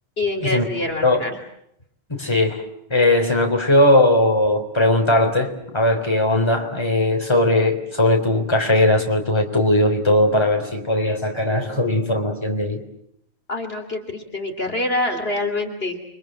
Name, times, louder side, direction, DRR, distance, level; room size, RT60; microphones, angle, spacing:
voice 1, 0.2-1.4 13.5-16.0, left 2 dB, 45° left, 4 dB, 3.1 m, -25 dB
voice 2, 2.1-2.6 2.9-12.8, left 1 dB, 20° left, 3 dB, 3.7 m, -19 dB
30.0 x 24.5 x 7.7 m, 0.75 s
omnidirectional pair, 1.4 m